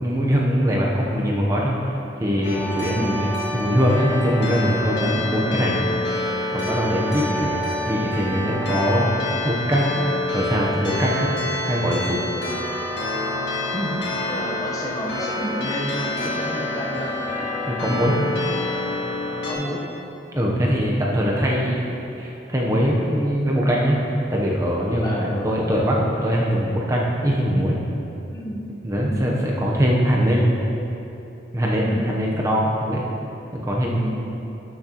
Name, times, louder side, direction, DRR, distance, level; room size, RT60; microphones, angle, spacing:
voice 1, 0.0-1.8 2.2-5.8 6.5-9.1 9.4-9.9 10.3-11.3 11.7-12.2 17.7-18.3 20.3-21.9 22.2-24.0 24.3-27.8 28.8-30.5 31.5-33.0 33.5-34.1, equal, 15° right, -3 dB, 0.7 m, -22 dB
sound 1, 2.4-19.5, left 1 dB, 65° left, 1.8 m, -27 dB
voice 2, 2.9-3.3 5.4-5.6 12.7-12.8 13.7-14.0 14.3-17.2 19.4-19.8 25.0-25.4 28.3-28.6 29.0-29.3 31.8-32.1 33.9-34.1, equal, 20° left, -3 dB, 0.9 m, -31 dB
12.5 x 6.3 x 2.9 m, 2.8 s
head